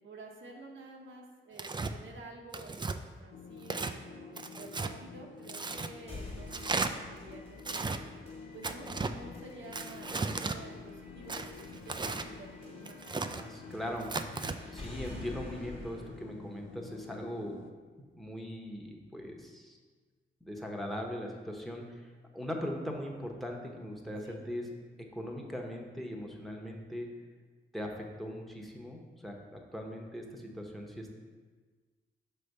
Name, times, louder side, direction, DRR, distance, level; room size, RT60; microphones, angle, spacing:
voice 1, 0.0-7.9 8.5-13.0 24.2-24.4, right 2 dB, 70° right, 1 dB, 0.9 m, -50 dB
Tearing, 1.6-1.9 2.5-3.0 3.6-3.9 4.4-4.9 5.5-5.9 6.5-6.9 7.6-8.0 8.6-9.1 9.7-10.6 11.3-12.3 12.8-13.4 14.0-14.6, right 3 dB, 20° right, 0.4 m, -35 dB
sound 1, 3.3-17.7, left 5 dB, 70° left, 0.5 m, -50 dB
sound 2, 6.1-18.0, left 2 dB, 30° left, 1.3 m, -49 dB
voice 2, 13.4-14.3 14.6-17.6 18.0-19.8 20.4-22.0 22.3-24.7 25.0-27.1 27.7-31.1, equal, ahead, 0 dB, 1.1 m, -40 dB
5.5 x 3.4 x 5.4 m, 1.4 s
cardioid pair, 55°, 21 cm